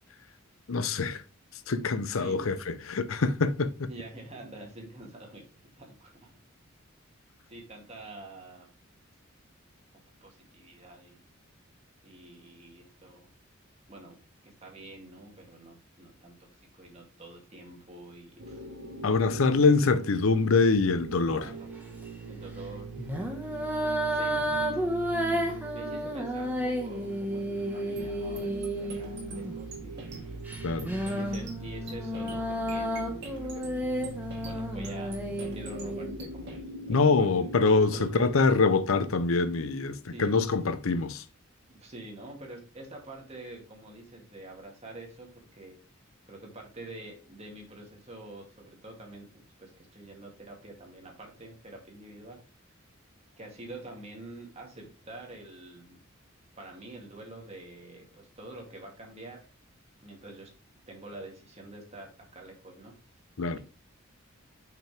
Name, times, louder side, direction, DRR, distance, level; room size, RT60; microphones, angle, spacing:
voice 1, 0.7-1.2 1.7-3.9 19.0-21.5 30.6-30.9 36.9-41.2 63.4-63.6, left 4 dB, 80° left, 0.7 m, -24 dB
voice 2, 2.2-2.6 3.9-6.3 7.5-8.7 10.2-11.2 12.0-13.3 13.9-16.4 16.8-18.7 19.4-19.7 21.3-21.7 22.3-22.9 23.2-23.6 24.1-24.8 25.1-30.4 31.1-37.5 37.9-38.2 40.0-40.4 41.7-45.8 46.3-52.4 53.4-56.0 56.6-59.4 60.0-60.5 60.9-63.0, right 2 dB, 30° right, 2.2 m, -47 dB
sound 1, 18.4-38.3, right 4 dB, 80° right, 1.3 m, -42 dB
sound 2, 21.3-21.6 23.0-29.6 30.5-36.1, equal, 10° right, 1.3 m, -32 dB
sound 3, 28.0-36.6, right 2 dB, 55° right, 2.3 m, -45 dB
6.0 x 5.7 x 3.4 m
head